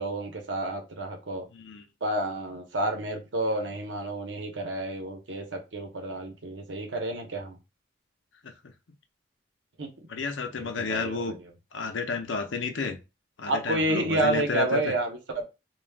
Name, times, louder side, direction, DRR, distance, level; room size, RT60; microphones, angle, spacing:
voice 1, 0.0-1.4 2.0-7.6 9.8-9.9 10.6-11.5 13.5-15.4, right 2 dB, 85° right, 0.8 m, -30 dB
voice 2, 1.5-1.8 8.4-8.5 10.1-11.4 11.7-13.0 13.4-14.9, left 4 dB, 90° left, 0.6 m, -31 dB
2.3 x 2.3 x 3.4 m
head